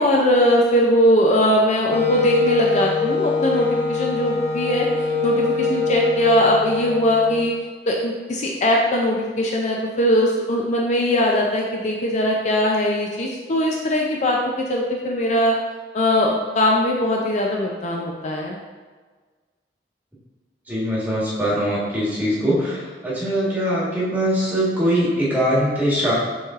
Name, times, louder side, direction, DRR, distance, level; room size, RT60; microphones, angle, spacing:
voice 1, 0.0-4.9 5.2-7.5 7.9-15.5 15.9-18.6, left 1 dB, 40° left, -1 dB, 0.4 m, -20 dB
Wind instrument woodwind instrument, 1.9-7.6, left 3 dB, 10° left, 0.8 m, -23 dB
voice 2, 20.7-26.1, equal, 10° right, -8 dB, 1.3 m, -22 dB
6.8 x 3.2 x 2.4 m, 1.4 s
head